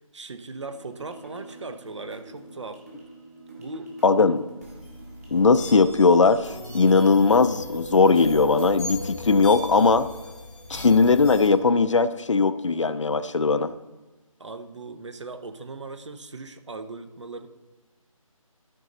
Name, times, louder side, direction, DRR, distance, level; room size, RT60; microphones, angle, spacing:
voice 1, 0.1-2.8 3.6-4.2 14.4-17.5, right 3 dB, 55° right, 10 dB, 0.8 m, -38 dB
sound 1, 0.5-7.5, right 2 dB, 25° right, 1.9 m, -47 dB
voice 2, 4.0-4.5 5.3-10.1 10.7-13.7, left 4 dB, 60° left, 13 dB, 0.5 m, -19 dB
sound 2, 4.6-11.5, left 2 dB, ahead, 1.2 m, -38 dB
13.0 x 5.4 x 3.9 m, 1.2 s
figure-of-eight pair, 170°, 18 cm